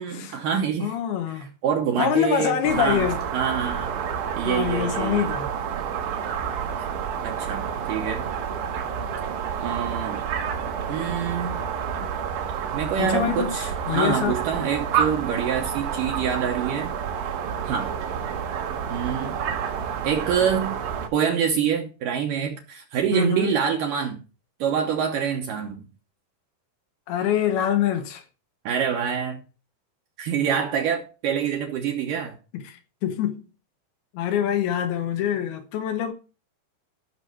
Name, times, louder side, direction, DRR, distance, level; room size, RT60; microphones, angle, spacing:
voice 1, 0.0-1.0 1.6-4.0 4.4-5.4 7.2-8.3 9.6-10.2 10.9-11.5 12.7-16.9 17.7-17.9 18.9-19.3 20.0-20.8 21.1-24.2 24.6-25.8 28.7-29.4 30.2-32.4, right 7 dB, 70° right, 2.3 m, -26 dB
voice 2, 0.8-1.5 2.0-3.2 4.4-5.5 13.0-14.4 23.1-23.5 27.1-28.2 32.5-33.5 34.1-36.1, left 9 dB, 75° left, 2.8 m, -25 dB
sound 1, 2.7-21.1, right 7 dB, 85° right, 4.0 m, -29 dB
13.5 x 6.1 x 4.5 m
omnidirectional pair, 4.7 m